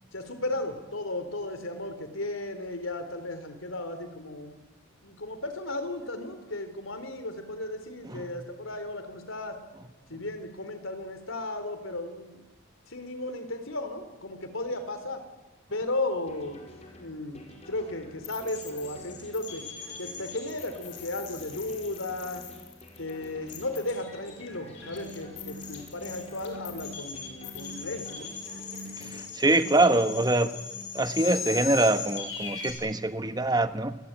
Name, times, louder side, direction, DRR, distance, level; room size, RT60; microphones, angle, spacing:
voice 1, 0.1-4.6 5.0-9.6 10.1-12.4 12.9-15.2 15.7-16.6 17.0-19.6 20.0-22.4 23.0-28.3, left 2 dB, 80° left, 9 dB, 3.9 m, -35 dB
sound 1, 16.3-29.2, left 1 dB, 35° left, 4.8 m, -50 dB
sound 2, 18.2-32.7, left 6 dB, 65° left, 6.9 m, -40 dB
sound 3, 24.5-32.3, equal, 75° right, 6.9 m, -48 dB
voice 2, 29.0-30.6 30.9-34.0, right 2 dB, 20° right, 10 dB, 1.2 m, -24 dB
29.0 x 20.5 x 9.1 m, 1.1 s
head